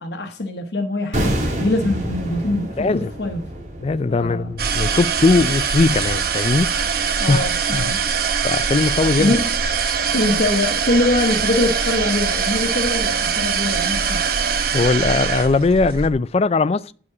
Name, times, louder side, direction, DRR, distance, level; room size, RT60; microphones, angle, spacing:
voice 1, 0.0-3.4 4.1-4.5 6.7-6.8 7.2-8.0 9.2-9.5 10.1-14.2, left 2 dB, 65° left, 1.0 m, -23 dB
sound 1, 1.1-6.2 6.4-6.6, right 1 dB, 40° right, 2.1 m, -29 dB
voice 2, 2.8-3.1 3.8-6.7 7.3-7.4 7.7-7.9 8.4-9.4 14.7-16.9, left 3 dB, 35° left, 0.3 m, -19 dB
sound 2, 4.6-16.1, right 6 dB, 55° right, 0.9 m, -22 dB
9.5 x 5.1 x 4.8 m
head